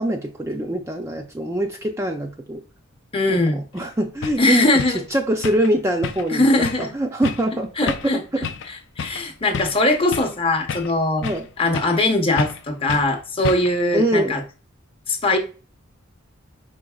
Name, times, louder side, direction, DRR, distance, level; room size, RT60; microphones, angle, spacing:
voice 1, 0.0-2.6 3.3-3.4 3.7-4.7 5.1-6.4 6.8-7.9 11.2-11.5 13.9-14.3, right 1 dB, 15° right, 2 dB, 0.4 m, -23 dB
voice 2, 3.1-3.6 4.4-5.0 6.3-6.9 7.8-11.3 11.6-14.4 15.1-15.4, left 2 dB, 25° left, 4 dB, 0.8 m, -21 dB
sound 1, 3.8-3.9 4.2-4.4 4.8-5.0 5.4-5.7 6.0-6.4 6.6-6.9 7.2-7.5 7.9-8.1 8.4-8.7 9.0-9.2 9.5-10.4 10.7-11.5 11.7-12.0 12.4-12.6 12.9-13.1 13.4-13.8, left 6 dB, 60° left, 0.4 m, -30 dB
5.1 x 3.6 x 2.3 m, 0.34 s
head